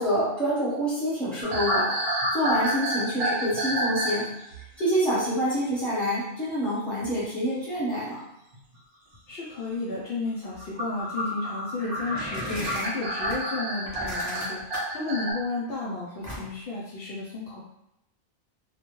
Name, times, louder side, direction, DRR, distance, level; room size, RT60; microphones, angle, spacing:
voice 1, 0.0-2.0 2.3-4.3 4.8-8.2, equal, ahead, -9 dB, 0.9 m, -27 dB
sound 1, 1.4-4.3 4.5-4.8 7.0-7.2 8.5-8.6 10.5-15.3, right 1 dB, 65° right, 0.8 m, -29 dB
voice 2, 9.3-17.6, left 3 dB, 65° left, -6 dB, 0.7 m, -33 dB
sound 2, 11.8-13.4 13.8-15.0 16.2-16.7, equal, 25° left, 0.4 m, -35 dB
2.3 x 2.1 x 2.9 m, 0.86 s
omnidirectional pair, 1.2 m